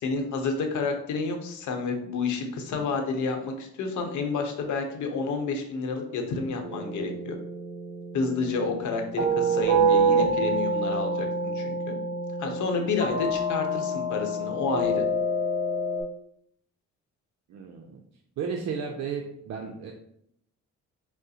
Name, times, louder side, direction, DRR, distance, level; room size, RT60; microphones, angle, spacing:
voice 1, 0.0-7.4 8.1-12.0 12.4-15.1, left 4 dB, 75° left, 4 dB, 0.8 m, -30 dB
sound 1, 6.6-16.0, right 2 dB, 40° right, 1.0 m, -27 dB
voice 2, 17.5-18.0 18.4-19.9, right 6 dB, 60° right, 3 dB, 0.5 m, -34 dB
6.2 x 2.1 x 2.8 m, 0.72 s
cardioid pair, 90°, 30 cm